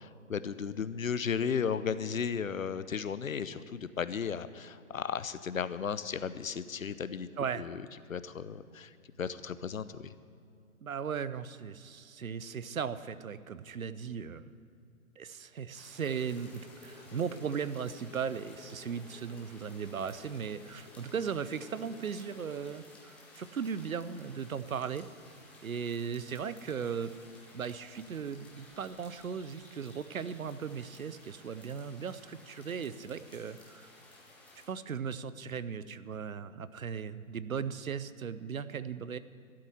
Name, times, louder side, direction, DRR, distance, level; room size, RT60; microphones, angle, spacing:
voice 1, 0.0-7.3 7.5-7.8 8.1-8.9 9.2-10.1, left 6 dB, 70° left, 14 dB, 0.8 m, -35 dB
voice 2, 10.8-14.4 15.2-25.1 25.6-27.1 27.5-33.9 34.7-39.2, right 7 dB, 75° right, 14 dB, 0.8 m, -37 dB
sound 1, 15.7-34.7, left 2 dB, 5° left, 1.0 m, -56 dB
sound 2, 16.1-22.7, left 5 dB, 40° left, 1.6 m, -55 dB
12.5 x 7.8 x 10.0 m, 2.5 s
figure-of-eight pair, 135°, 42 cm